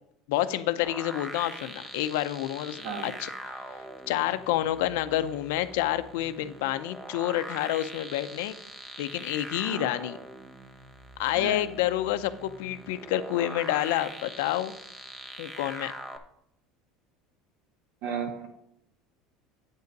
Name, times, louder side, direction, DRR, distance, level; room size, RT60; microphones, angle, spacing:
voice 1, 0.3-3.6 4.1-8.6 9.0-10.2 11.2-14.7 15.4-15.9, left 13 dB, 80° left, 11 dB, 0.6 m, -28 dB
sound 1, 0.8-16.2, right 2 dB, 10° right, 0.7 m, -43 dB
voice 2, 2.8-3.2 9.7-9.9 11.4-11.7 18.0-18.5, right 6 dB, 60° right, 4 dB, 1.8 m, -34 dB
9.1 x 5.4 x 5.3 m, 0.73 s
cardioid pair, 160°, 0 cm